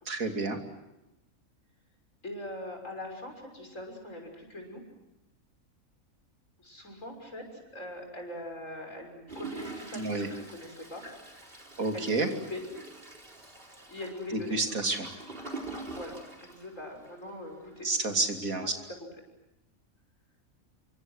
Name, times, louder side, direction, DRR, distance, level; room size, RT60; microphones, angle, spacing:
voice 1, 0.1-0.6 9.9-10.3 11.8-12.3 14.3-15.1 17.8-18.7, right 3 dB, 75° right, 4 dB, 3.2 m, -29 dB
voice 2, 2.2-4.8 6.6-11.0 11.9-12.6 13.6-14.6 15.8-17.9 18.6-18.7, left 1 dB, 60° left, 3 dB, 6.6 m, -42 dB
Toilet flush, 9.3-17.3 17.8-17.9 18.1-18.2, right 3 dB, 40° right, 4.4 m, -44 dB
28.0 x 24.5 x 8.0 m, 0.93 s
omnidirectional pair, 1.5 m